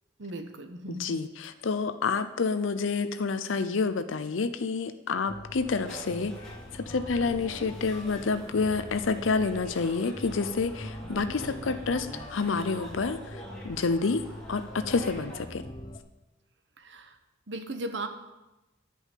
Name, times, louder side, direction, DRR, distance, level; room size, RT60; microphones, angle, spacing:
voice 1, 0.2-1.2 16.8-17.2 17.5-18.1, right 2 dB, 65° right, 7 dB, 1.0 m, -37 dB
voice 2, 0.9-6.3 6.7-14.2 14.5-15.6, left 4 dB, 80° left, 11 dB, 0.6 m, -29 dB
sound 1, 5.3-16.0, left 1 dB, 20° left, 0.7 m, -43 dB
sound 2, 5.6-15.5, right 1 dB, 5° left, 2.2 m, -46 dB
10.0 x 5.5 x 8.3 m, 1.0 s
head